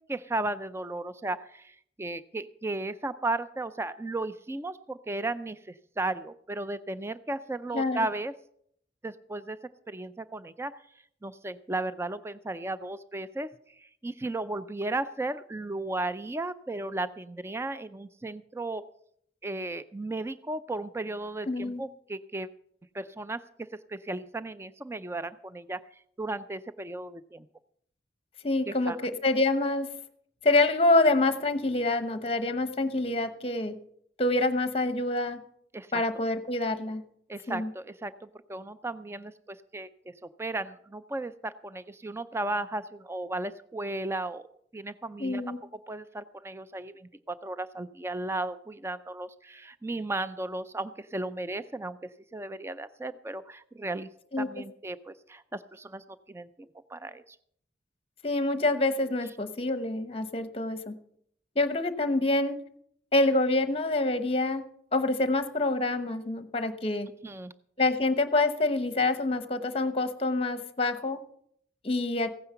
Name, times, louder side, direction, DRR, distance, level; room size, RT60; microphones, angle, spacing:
voice 1, 0.1-8.3 9.0-9.6 9.9-10.8 11.2-18.9 19.4-22.5 22.9-25.8 26.2-27.5 28.7-29.0 35.7-36.0 37.3-44.5 44.7-45.4 45.9-54.1 54.4-57.4 67.2-67.5, right 2 dB, 15° right, 14 dB, 0.4 m, -35 dB
voice 2, 21.5-21.8 28.4-29.9 30.4-33.8 34.2-35.4 35.9-37.0 37.5-37.7 45.2-45.6 54.3-54.5 58.2-60.9 61.6-62.6 63.1-67.1 67.8-71.2 71.8-72.3, left 2 dB, 30° left, 11 dB, 0.9 m, -26 dB
15.5 x 9.6 x 5.7 m, 0.69 s
head